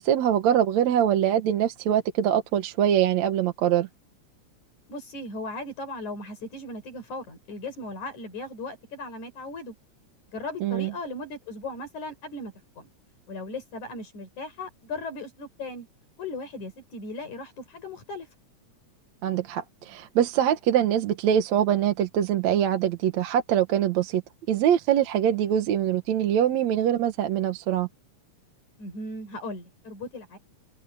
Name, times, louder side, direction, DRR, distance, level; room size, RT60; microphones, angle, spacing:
voice 1, 0.0-3.9 10.6-10.9 19.2-24.2 24.5-27.9, right 10 dB, 70° right, 2.4 m, -23 dB
voice 2, 4.9-9.7 10.3-12.9 13.3-15.9 16.2-18.3 28.8-30.4, left 2 dB, 80° left, 7.0 m, -37 dB
omnidirectional pair, 3.4 m